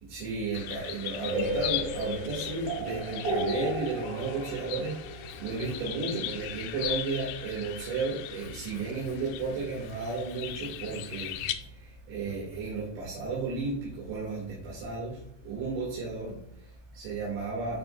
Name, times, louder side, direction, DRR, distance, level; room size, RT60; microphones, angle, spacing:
voice 1, 0.0-17.8, right 4 dB, 75° right, -5 dB, 4.3 m, -34 dB
sound 1, 0.5-11.5, left 13 dB, 90° left, 2.4 m, -39 dB
sound 2, 1.3-7.1, right 1 dB, 60° right, 2.9 m, -34 dB
Writing, 5.2-12.8, left 1 dB, 65° left, 4.9 m, -50 dB
13.0 x 5.2 x 2.3 m, 0.72 s
omnidirectional pair, 5.5 m